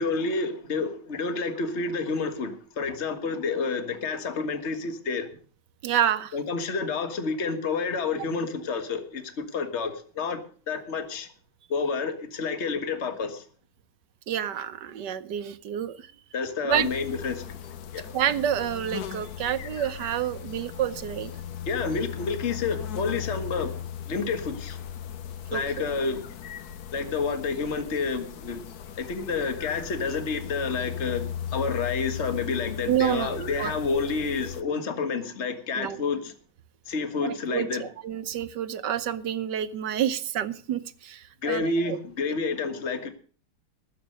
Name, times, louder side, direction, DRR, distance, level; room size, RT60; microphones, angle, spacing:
voice 1, 0.0-5.3 6.3-10.4 10.7-11.3 11.7-13.5 16.3-18.1 21.7-24.8 25.5-26.2 26.9-28.6 28.9-36.3 36.9-37.9 41.4-43.1, left 4 dB, 35° left, 1.7 m, -29 dB
voice 2, 5.8-6.3 14.3-16.1 16.6-16.9 18.1-21.3 25.5-25.6 32.9-33.7 35.7-36.0 37.2-42.0, right 10 dB, 65° right, 1.4 m, -28 dB
sound 1, 16.7-34.6, left 9 dB, 60° left, 1.2 m, -37 dB
19.0 x 7.8 x 6.4 m
omnidirectional pair, 2.2 m